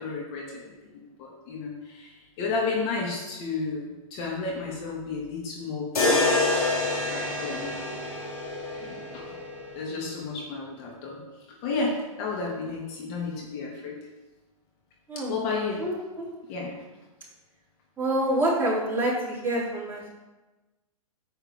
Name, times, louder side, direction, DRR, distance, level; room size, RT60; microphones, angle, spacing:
voice 1, 0.0-6.4 7.1-7.7 8.8-9.4 9.7-11.2 11.6-14.0 15.3-15.9 16.5-16.7, left 4 dB, 40° left, -3 dB, 2.9 m, -32 dB
sound 1, 5.9-10.0, left 2 dB, 80° left, 4.0 m, -27 dB
voice 2, 15.1-15.4 15.8-16.3 18.0-20.1, right 1 dB, 10° right, -7 dB, 4.3 m, -27 dB
9.8 x 8.7 x 4.7 m, 1.1 s
hypercardioid pair, 120°, 18 cm